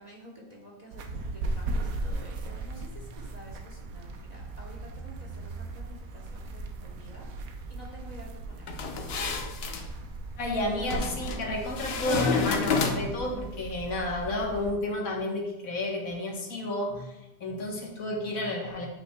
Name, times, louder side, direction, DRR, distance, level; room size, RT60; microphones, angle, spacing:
voice 1, 0.0-7.3 7.7-8.7, equal, 35° right, -2 dB, 1.0 m, -49 dB
sound 1, 0.9-14.7, right 2 dB, 80° right, 1.1 m, -37 dB
sound 2, 8.7-9.9 10.9-11.4 11.8-13.3, left 5 dB, 55° left, 0.8 m, -30 dB
voice 2, 10.4-18.9, left 1 dB, 75° left, 0 dB, 1.6 m, -31 dB
8.6 x 5.4 x 2.2 m, 0.96 s
omnidirectional pair, 1.4 m